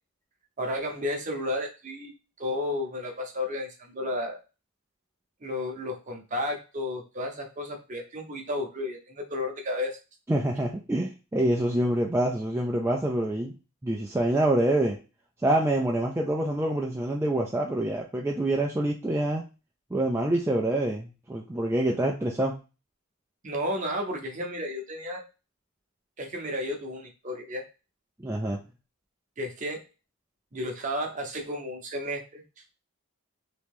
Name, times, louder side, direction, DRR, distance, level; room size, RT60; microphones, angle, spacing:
voice 1, 0.6-2.1 2.4-4.4 5.4-10.0 23.4-25.2 26.2-27.6 29.4-29.8 30.5-32.4, left 1 dB, 35° right, 2 dB, 0.7 m, -32 dB
voice 2, 10.3-13.5 13.8-15.0 15.4-19.4 19.9-22.5 28.2-28.6, right 1 dB, 10° right, -1 dB, 0.3 m, -26 dB
3.0 x 2.7 x 3.5 m, 0.31 s
head